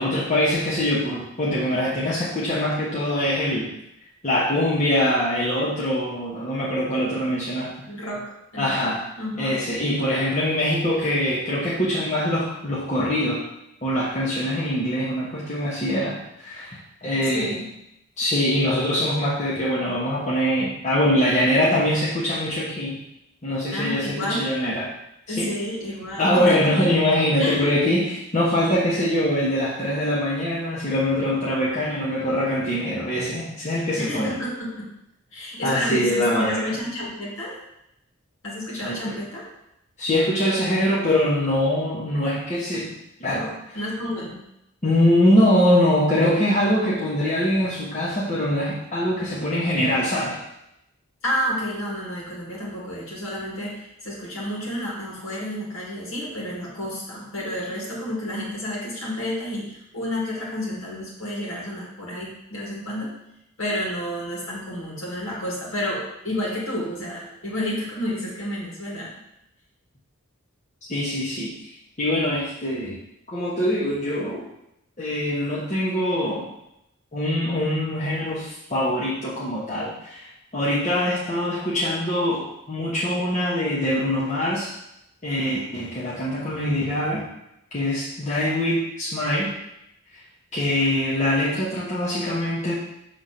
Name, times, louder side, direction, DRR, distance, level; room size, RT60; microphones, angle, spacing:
voice 1, 0.0-3.8 4.2-7.7 8.6-9.0 9.4-13.4 13.8-17.6 18.2-23.0 23.4-24.9 25.3-25.5 26.2-34.3 35.6-36.8 38.8-39.2 40.0-42.9 43.2-43.5 44.8-50.4 70.9-71.5 72.0-73.0 73.3-74.5 75.0-76.5 77.1-80.3 80.5-84.7 85.2-87.3 87.7-89.5 90.5-92.7, left 1 dB, 35° left, -8 dB, 1.3 m, -23 dB
voice 2, 7.9-9.6 17.1-17.7 23.7-24.5 25.3-26.9 27.4-27.7 34.0-34.8 35.3-37.6 38.4-39.5 43.7-44.4 51.2-63.1 63.6-69.1, left 1 dB, 70° left, -5 dB, 2.1 m, -30 dB
6.7 x 3.6 x 5.9 m, 0.83 s
head